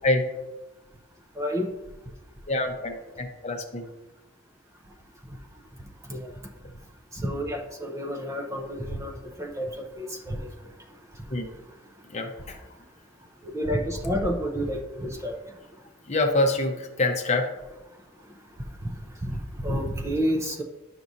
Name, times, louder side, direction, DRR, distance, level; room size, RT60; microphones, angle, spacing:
voice 1, 1.4-1.7 6.1-6.3 7.1-9.7 10.0-10.5 13.4-15.4 19.2-20.6, equal, 15° right, 3 dB, 0.6 m, -29 dB
voice 2, 2.5-3.9 11.3-11.5 12.1-12.6 16.1-17.5, left 2 dB, 35° left, 4 dB, 0.8 m, -26 dB
10.0 x 6.0 x 2.7 m, 1.1 s
head